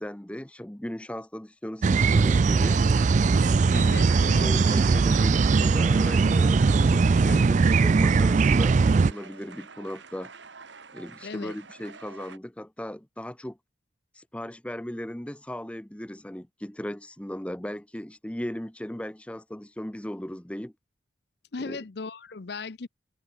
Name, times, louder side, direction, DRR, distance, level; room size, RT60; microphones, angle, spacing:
voice 1, 0.0-2.8 4.2-10.3 10.9-13.6 14.1-20.7 21.6-21.8, equal, 5° left, 0.6 m, -37 dB
sound 1, 1.8-9.1, right 4 dB, 40° right, 0.3 m, -20 dB
sound 2, 2.6-12.4, right 5 dB, 70° right, 2.0 m, -47 dB
voice 2, 3.7-4.8 11.2-11.5 21.5-22.9, left 4 dB, 60° left, 0.7 m, -37 dB
head